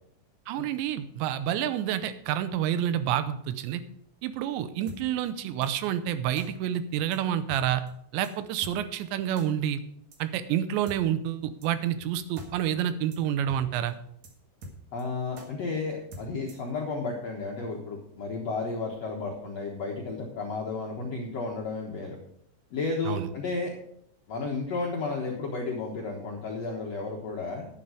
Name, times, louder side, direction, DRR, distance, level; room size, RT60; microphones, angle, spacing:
voice 1, 0.5-3.8 4.2-7.8 8.1-9.8 10.2-13.9 23.1-23.3, right 10 dB, 85° right, 12 dB, 3.0 m, -28 dB
sound 1, 4.9-5.0 5.6-5.7 6.4-6.5 7.1-7.2 7.5-7.6 7.9-8.0 8.2-8.3 8.6-8.7 9.4-9.5 10.1-10.2 10.9-11.0 11.6-11.7 12.0-12.1 12.4-12.5 12.7-12.8 13.1-13.2 13.5-13.6 13.9-14.0 14.2-14.3 14.6-15.0 15.4-15.5 16.1-16.7, equal, 55° right, 2.2 m, -43 dB
voice 2, 14.9-22.2 22.7-23.7 24.3-27.7, left 3 dB, 70° left, -1 dB, 1.5 m, -33 dB
11.0 x 8.7 x 5.0 m, 0.70 s
omnidirectional pair, 5.1 m